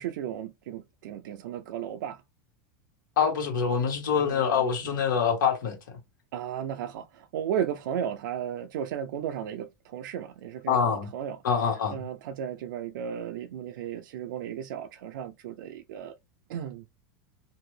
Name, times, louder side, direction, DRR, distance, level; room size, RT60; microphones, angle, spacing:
voice 1, 0.0-2.2 4.2-4.7 6.3-11.4 11.9-16.1 16.5-16.8, right 9 dB, 80° right, 0.4 m, -35 dB
voice 2, 3.2-5.7 10.7-11.1 11.4-11.9, left 7 dB, 90° left, 1.5 m, -25 dB
2.9 x 2.5 x 3.2 m
supercardioid pair, 130°, 10 cm